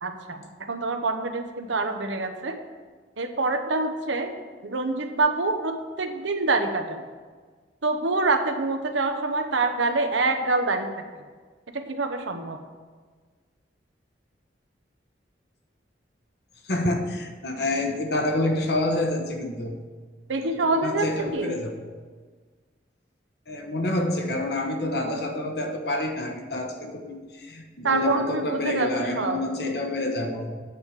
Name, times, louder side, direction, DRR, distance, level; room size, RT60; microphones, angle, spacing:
voice 1, 0.0-2.5 3.2-4.3 4.6-7.0 7.8-10.9 11.7-12.6 20.3-21.1 21.3-21.6 27.8-28.9 29.2-29.4, right 3 dB, 85° right, 6 dB, 1.0 m, -26 dB
voice 2, 16.6-19.9 20.5-21.9 23.5-30.6, left 1 dB, 60° left, 4 dB, 1.1 m, -28 dB
8.7 x 4.8 x 7.2 m, 1.5 s
head